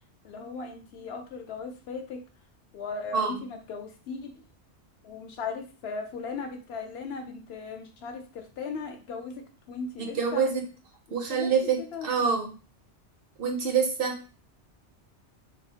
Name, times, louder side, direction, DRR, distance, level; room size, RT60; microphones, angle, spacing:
voice 1, 0.2-2.2 2.7-4.3 5.0-10.4 11.1-12.3, left 4 dB, 70° left, 4 dB, 0.8 m, -38 dB
voice 2, 10.0-10.6 11.1-12.5 13.4-14.4, right 6 dB, 60° right, 3 dB, 0.7 m, -26 dB
3.9 x 2.0 x 2.7 m, 0.35 s
omnidirectional pair, 1.2 m